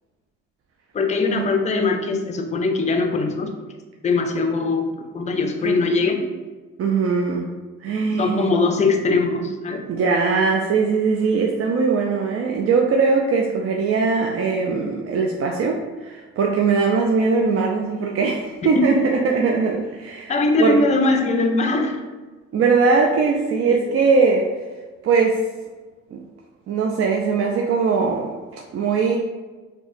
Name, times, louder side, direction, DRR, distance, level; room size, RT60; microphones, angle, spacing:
voice 1, 0.9-3.5 4.0-4.9 5.1-6.2 8.2-9.8 18.8-18.9 20.3-22.0 23.7-24.0, left 3 dB, 25° left, 4 dB, 0.4 m, -21 dB
voice 2, 6.8-7.5 7.8-8.5 9.9-20.3 20.6-20.8 22.5-24.5 25.0-25.4 26.1-26.2 26.7-28.3 28.7-29.2, right 4 dB, 50° right, 0 dB, 0.4 m, -20 dB
4.3 x 2.1 x 2.5 m, 1.3 s
cardioid pair, 90°, 30 cm